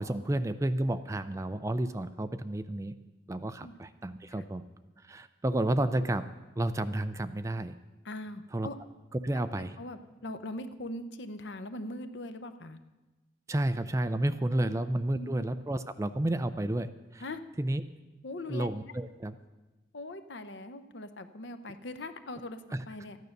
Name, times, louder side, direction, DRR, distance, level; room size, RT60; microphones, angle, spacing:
voice 1, 0.0-2.9 3.3-4.6 5.0-6.3 6.6-7.8 8.5-8.7 9.2-9.8 13.5-17.2 17.6-17.8 18.5-19.3 22.7-22.8, right 1 dB, 15° right, 11 dB, 0.4 m, -31 dB
voice 2, 8.0-8.8 9.6-12.8 14.6-14.8 15.1-15.4 17.2-17.4 18.2-18.7 19.9-23.2, left 1 dB, 75° left, 9 dB, 0.8 m, -41 dB
13.5 x 9.4 x 6.5 m, 1.2 s
head